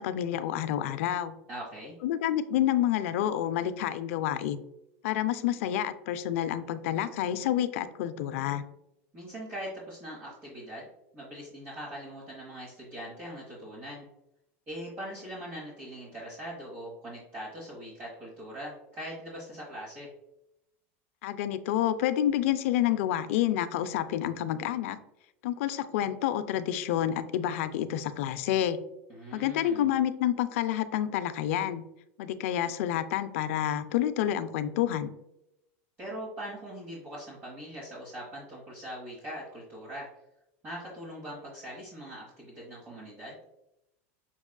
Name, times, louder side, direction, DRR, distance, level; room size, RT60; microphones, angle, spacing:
voice 1, 0.0-1.3 2.0-4.6 5.0-8.6 21.2-25.0 25.4-28.8 29.3-31.8 32.2-35.1, left 11 dB, 75° left, 12 dB, 0.3 m, -28 dB
voice 2, 1.5-1.9 9.1-10.9 11.1-14.0 14.7-20.1 29.1-29.9 36.0-40.1 40.6-43.4, equal, 30° right, -6 dB, 1.2 m, -41 dB
5.9 x 2.4 x 2.2 m, 0.85 s
supercardioid pair, 120°, 7 cm